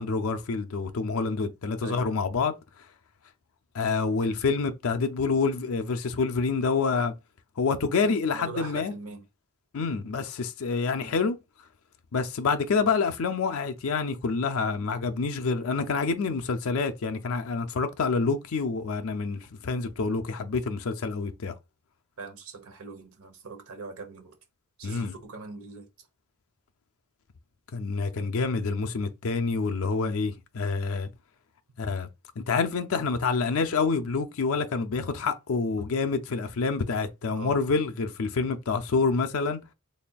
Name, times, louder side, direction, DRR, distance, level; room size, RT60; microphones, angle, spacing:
voice 1, 0.0-2.5 3.7-7.1 7.6-8.9 9.7-11.4 12.1-21.5 24.8-25.1 27.7-31.1 31.8-32.1 32.5-39.6, left 4 dB, 70° left, 0.5 m, -27 dB
voice 2, 8.3-9.2 22.2-24.4 24.8-25.9 37.3-37.6, right 3 dB, 70° right, 1.0 m, -41 dB
4.1 x 3.4 x 2.3 m
head